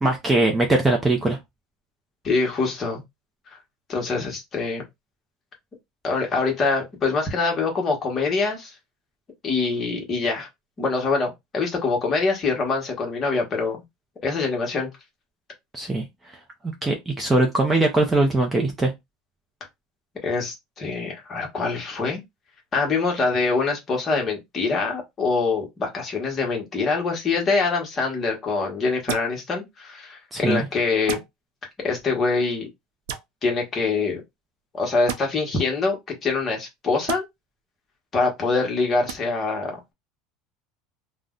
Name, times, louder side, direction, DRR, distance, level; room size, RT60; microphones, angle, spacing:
voice 1, 0.0-1.4 15.7-16.0 16.8-18.9 30.3-30.7, right 2 dB, 10° right, 0.5 m, -21 dB
voice 2, 2.2-3.0 3.9-4.8 6.0-8.7 9.4-10.5 10.8-13.8 14.2-14.9 20.2-22.2 22.7-31.2 31.8-32.7 33.4-34.2 34.7-37.2 38.1-39.9, left 4 dB, 25° left, 1.1 m, -24 dB
sound 1, 29.1-29.3 31.1-31.3 33.1-33.3 35.1-35.2 37.1-37.2 39.1-39.2, right 9 dB, 85° right, 0.5 m, -30 dB
2.5 x 2.1 x 3.6 m
cardioid pair, 155°, 0 cm